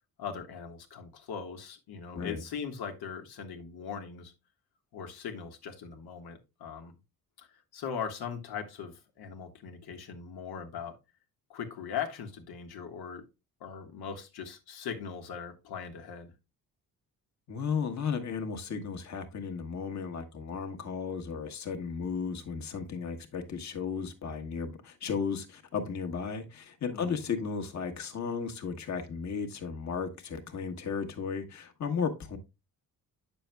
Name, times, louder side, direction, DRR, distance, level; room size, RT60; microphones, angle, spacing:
voice 1, 0.2-4.3 4.9-6.9 7.4-10.9 11.5-13.3 13.6-16.3 26.9-27.1, left 7 dB, 90° left, 1.5 m, -40 dB
voice 2, 17.5-32.4, left 6 dB, 45° left, 1.3 m, -34 dB
9.2 x 6.8 x 2.2 m
cardioid pair, 135°, 37 cm